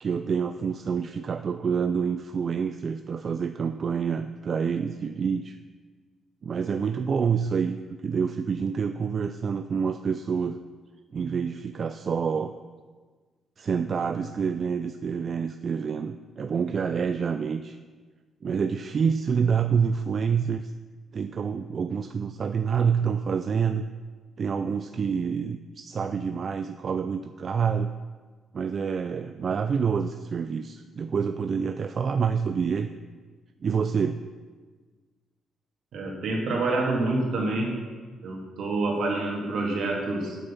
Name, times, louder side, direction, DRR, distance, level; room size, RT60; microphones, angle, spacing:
voice 1, 0.0-5.6 6.4-7.8 8.0-10.6 11.1-12.6 13.6-17.8 18.4-20.7 21.1-23.9 24.4-27.9 28.5-32.9 33.6-34.2, right 6 dB, 45° right, 9 dB, 0.4 m, -27 dB
voice 2, 35.9-37.7 38.2-40.4, right 2 dB, 70° right, 0 dB, 2.2 m, -27 dB
8.3 x 8.1 x 5.8 m, 1.5 s
cardioid pair, 90°, 0 cm